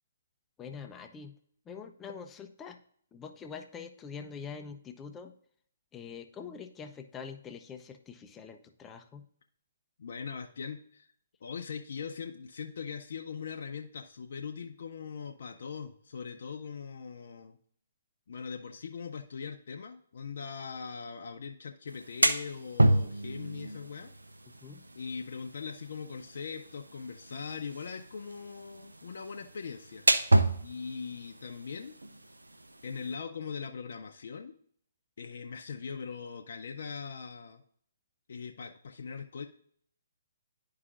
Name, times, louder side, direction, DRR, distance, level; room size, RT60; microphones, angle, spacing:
voice 1, 0.6-1.3 1.7-2.8 3.1-5.3 5.9-9.3 24.6-24.9, left 6 dB, 15° left, 6 dB, 0.5 m, -44 dB
voice 2, 10.0-11.1 11.4-17.6 18.3-24.1 25.0-30.1 30.6-32.0 32.8-34.6 35.2-37.6 38.3-39.5, left 5 dB, 65° left, 3 dB, 0.5 m, -41 dB
sound 1, 21.9-33.1, right 2 dB, 90° right, 0.5 m, -31 dB
11.0 x 4.8 x 2.5 m, 0.63 s
figure-of-eight pair, 135°, 0 cm